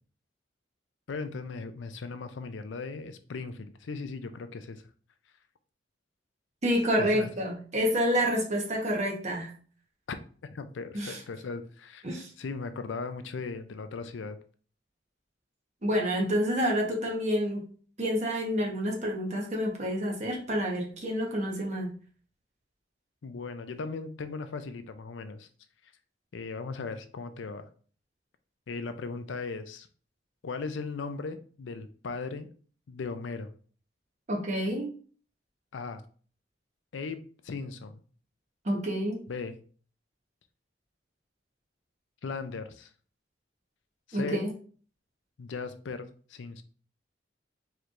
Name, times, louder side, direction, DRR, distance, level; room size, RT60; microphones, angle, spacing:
voice 1, 1.1-4.8 7.0-7.3 10.1-10.2 10.5-14.4 23.2-25.5 26.3-27.7 28.7-29.9 30.4-32.5 32.9-33.5 35.7-36.0 36.9-38.0 39.3-39.6 42.2-42.9 44.1-44.5 45.4-46.6, left 4 dB, 85° left, 10 dB, 0.5 m, -38 dB
voice 2, 6.6-9.5 10.9-11.2 12.0-12.3 15.8-17.6 18.0-21.9 34.3-34.9 38.6-39.2 44.1-44.5, equal, 40° right, -1 dB, 1.1 m, -28 dB
4.6 x 3.2 x 2.5 m, 0.42 s
head